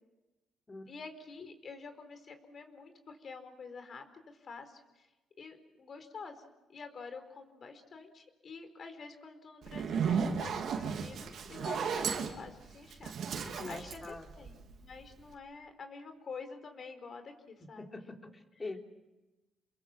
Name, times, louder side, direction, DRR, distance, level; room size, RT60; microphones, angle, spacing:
voice 1, 0.9-5.1 5.4-6.4 6.7-13.2 13.7-17.9, left 4 dB, 50° left, 8 dB, 4.4 m, -48 dB
Zipper (clothing), 9.6-14.9, right 6 dB, 65° right, 2.9 m, -34 dB
voice 2, 13.4-14.3 17.6-18.8, left 3 dB, 25° left, 3 dB, 3.5 m, -44 dB
29.0 x 22.0 x 7.4 m, 1.1 s
cardioid pair, 90°, 0 cm